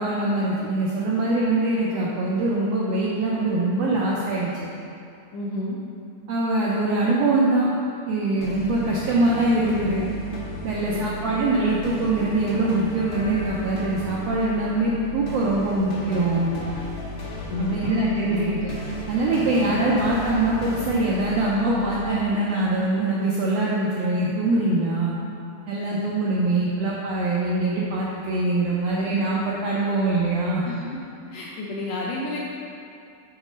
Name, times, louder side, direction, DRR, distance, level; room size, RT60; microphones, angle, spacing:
voice 1, 0.0-4.7 6.3-7.7 8.1-10.0 10.6-16.5 17.6-18.7 19.1-25.1 25.7-30.6, right 2 dB, 80° right, -5 dB, 1.5 m, -23 dB
voice 2, 5.3-5.8 10.6-11.1 17.5-17.9 18.3-18.5 30.6-31.0 31.3-32.4, left 3 dB, 80° left, -4 dB, 1.6 m, -31 dB
sound 1, 8.4-22.1, left 1 dB, 65° left, 1.2 m, -35 dB
6.1 x 4.0 x 5.1 m, 2.5 s
omnidirectional pair, 3.6 m